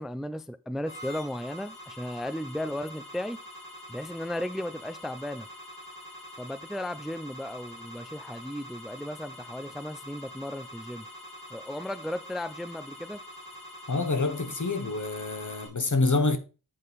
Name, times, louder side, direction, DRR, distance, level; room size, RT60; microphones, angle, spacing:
voice 1, 0.0-3.4 3.9-5.5 6.4-11.1 11.5-13.2, left 1 dB, ahead, 0.4 m, -35 dB
sound 1, 0.9-15.7, equal, 70° left, 2.7 m, -45 dB
voice 2, 13.9-16.4, left 3 dB, 55° left, 1.0 m, -27 dB
7.7 x 5.3 x 4.0 m
wide cardioid pair, 45°, 36 cm